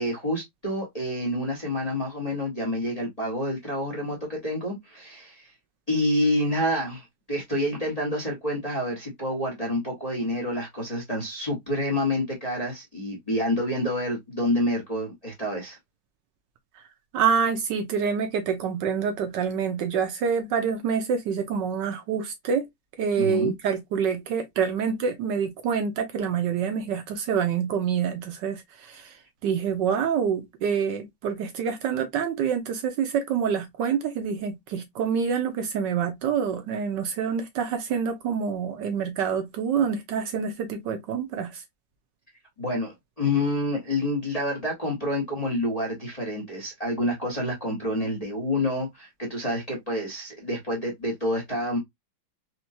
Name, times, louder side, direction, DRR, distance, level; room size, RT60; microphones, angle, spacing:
voice 1, 0.0-5.5 5.9-15.8 23.2-23.5 42.6-51.8, left 1 dB, 25° left, 0.9 m, -28 dB
voice 2, 17.1-22.7 23.0-29.2 29.4-41.6, right 7 dB, 75° right, 1.1 m, -27 dB
4.3 x 2.2 x 2.6 m
omnidirectional pair, 2.2 m